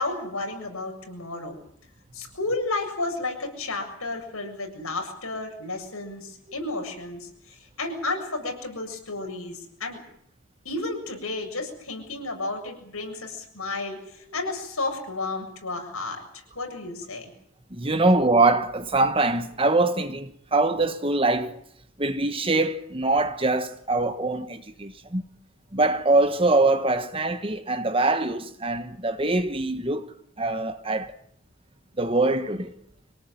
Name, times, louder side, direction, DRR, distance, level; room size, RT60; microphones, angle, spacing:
voice 1, 0.0-1.6 2.1-10.0 10.6-16.2 16.5-17.3, left 2 dB, 75° left, 7.4 m, -32 dB
voice 2, 17.7-21.6 22.0-25.2 25.7-31.1 32.0-32.7, right 2 dB, 25° right, 1.2 m, -23 dB
25.0 x 18.0 x 9.3 m
head